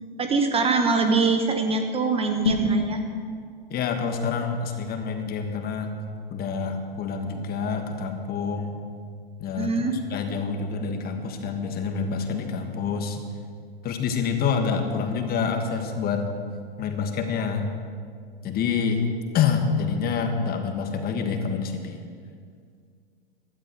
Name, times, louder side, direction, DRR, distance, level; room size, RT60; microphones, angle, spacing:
voice 1, 0.2-3.0 9.6-10.0, right 4 dB, 20° right, 6 dB, 1.1 m, -23 dB
sound 1, 2.3-2.9, left 1 dB, 90° left, 3.7 m, -23 dB
voice 2, 3.7-5.9 6.3-8.8 9.4-13.2 13.8-16.2 16.8-17.7 18.4-19.1 19.3-22.0, left 6 dB, 30° left, 5 dB, 1.6 m, -27 dB
16.5 x 12.0 x 4.7 m, 2.1 s
hypercardioid pair, 105°, 30 cm